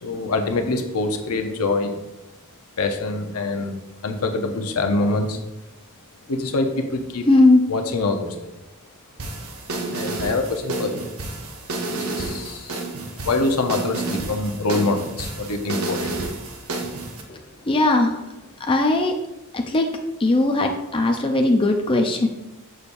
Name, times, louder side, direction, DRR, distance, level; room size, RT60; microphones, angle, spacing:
voice 1, 0.0-2.0 2.8-3.8 4.0-5.4 6.3-7.3 7.7-8.5 9.9-11.1 11.9-12.8 13.2-16.3, left 2 dB, 85° left, 5 dB, 0.8 m, -25 dB
voice 2, 7.3-7.6 17.3-17.4 17.7-18.1 18.7-19.1 19.5-19.9 20.2-22.3, left 2 dB, 25° left, 3 dB, 0.5 m, -18 dB
sound 1, 9.2-17.2, right 2 dB, 70° right, 0.9 m, -30 dB
6.9 x 6.3 x 2.6 m, 0.96 s
head